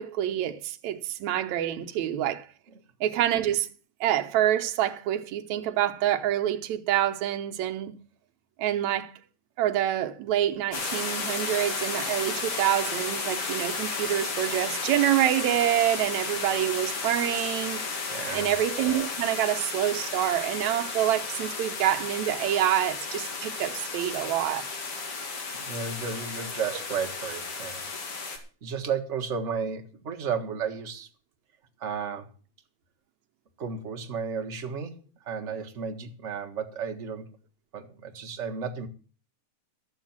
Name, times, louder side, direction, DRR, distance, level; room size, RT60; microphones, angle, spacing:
voice 1, 0.0-2.5 3.0-3.7 4.0-7.9 8.6-9.1 9.6-17.8 18.3-24.7, right 12 dB, 75° right, 2.2 m, -27 dB
sound 1, 10.7-28.4, left 4 dB, 50° left, 3.1 m, -33 dB
voice 2, 18.1-18.5 25.6-27.8 28.6-31.1 31.8-32.3 33.6-35.0 35.2-37.3 37.7-38.9, right 6 dB, 35° right, 1.3 m, -33 dB
13.5 x 7.3 x 7.2 m
omnidirectional pair, 3.3 m